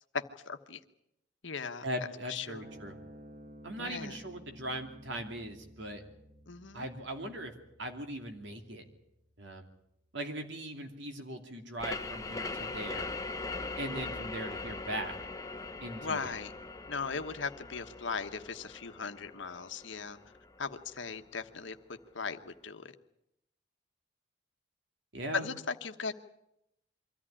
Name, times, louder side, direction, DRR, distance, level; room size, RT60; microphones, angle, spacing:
voice 1, 0.1-0.8 1.4-1.8 2.3-2.6 3.8-4.2 6.5-6.9 16.0-16.5 16.9-20.2 20.6-21.8 22.1-22.9 25.3-26.1, left 5 dB, 70° left, 8 dB, 1.1 m, -38 dB
voice 2, 1.8-3.0 3.6-6.0 6.7-7.5 7.8-8.8 9.4-9.7 10.1-13.1 13.8-15.2 15.8-16.3 25.1-25.5, right 1 dB, 65° right, 5 dB, 2.7 m, -39 dB
sound 1, 2.6-9.3, equal, 40° right, 1.5 m, -54 dB
sound 2, 11.8-21.2, left 3 dB, 15° left, 0.9 m, -41 dB
24.0 x 14.0 x 10.0 m, 0.85 s
head